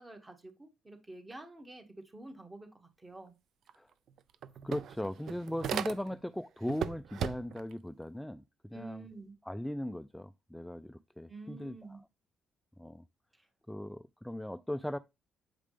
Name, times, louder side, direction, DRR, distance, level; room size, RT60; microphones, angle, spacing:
voice 1, 0.0-3.3 8.7-9.3 11.3-12.0 13.3-13.5, right 2 dB, 20° right, 1.9 m, -49 dB
sound 1, 3.7-3.8 4.1-6.3 6.7-7.7, right 9 dB, 70° right, 0.5 m, -38 dB
voice 2, 4.6-9.0 9.4-11.8 12.8-13.0 13.7-15.0, left 1 dB, 5° left, 0.3 m, -38 dB
7.5 x 5.0 x 3.4 m
cardioid pair, 90°, 0 cm